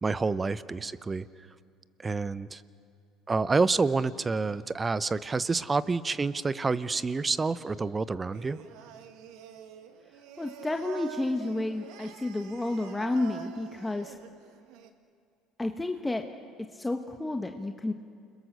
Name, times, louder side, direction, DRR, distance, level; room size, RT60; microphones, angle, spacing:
voice 1, 0.0-1.3 2.0-2.6 3.3-8.6, right 4 dB, 25° right, 16 dB, 0.8 m, -28 dB
Singing, 8.3-14.9, right 9 dB, 70° right, 1.6 m, -46 dB
voice 2, 10.4-14.2 15.6-16.2 16.7-17.9, left 2 dB, 15° left, 5 dB, 1.2 m, -31 dB
29.0 x 21.5 x 6.7 m, 2.3 s
hypercardioid pair, 70°, 0 cm